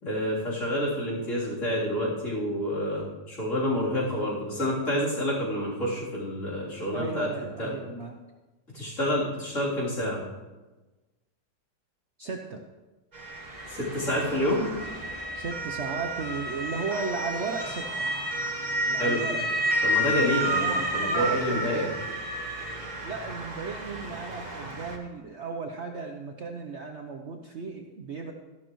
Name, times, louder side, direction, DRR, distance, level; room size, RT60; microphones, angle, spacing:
voice 1, 0.0-7.3 7.6-7.7 8.7-10.2 13.7-14.7 19.0-19.2 19.8-21.9, equal, 40° left, -7 dB, 3.7 m, -28 dB
voice 2, 6.9-8.2 12.2-12.6 15.3-18.1 18.8-19.4 20.6-22.2 23.0-28.3, right 4 dB, 60° right, 2 dB, 0.7 m, -35 dB
Motor vehicle (road) / Siren, 13.1-25.0, right 1 dB, 25° right, 1.2 m, -31 dB
13.5 x 11.5 x 3.1 m, 1.2 s
omnidirectional pair, 2.0 m